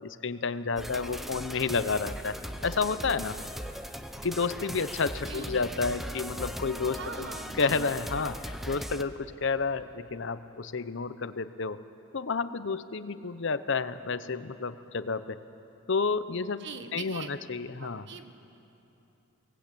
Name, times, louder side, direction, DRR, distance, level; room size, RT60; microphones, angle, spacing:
voice 1, 0.0-2.4 2.6-3.4 4.2-7.3 7.6-11.8 12.1-15.4 15.9-16.6 16.9-18.1, left 4 dB, 65° left, 13 dB, 0.8 m, -30 dB
sound 1, 0.8-9.0, equal, ahead, 0.7 m, -39 dB
voice 2, 6.9-7.9 16.6-17.3 17.8-18.3, right 5 dB, 60° right, 8 dB, 1.4 m, -42 dB
22.5 x 19.5 x 8.5 m, 2.9 s
head